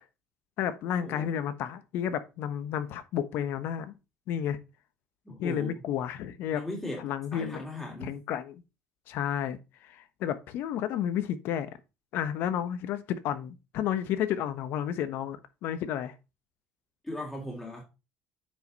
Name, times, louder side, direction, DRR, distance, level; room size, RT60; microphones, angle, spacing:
voice 1, 0.6-3.9 4.3-4.6 5.4-6.6 7.0-7.6 8.0-8.6 9.1-11.7 12.1-16.1, left 10 dB, 65° left, 1.1 m, -31 dB
voice 2, 5.2-5.8 6.5-7.0 7.3-8.2 17.0-17.8, left 1 dB, 10° left, 2.9 m, -38 dB
8.9 x 5.3 x 4.0 m
supercardioid pair, 85°, 4 cm